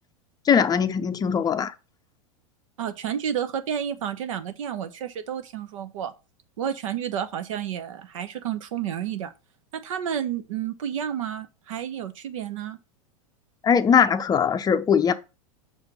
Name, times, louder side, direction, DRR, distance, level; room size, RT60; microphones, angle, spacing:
voice 1, 0.5-1.7 13.6-15.1, left 7 dB, 20° left, 0.6 m, -20 dB
voice 2, 2.8-6.1 6.6-9.3 9.7-12.8, right 9 dB, 70° right, 1.0 m, -30 dB
6.3 x 4.4 x 5.2 m
hypercardioid pair, 95°, 18 cm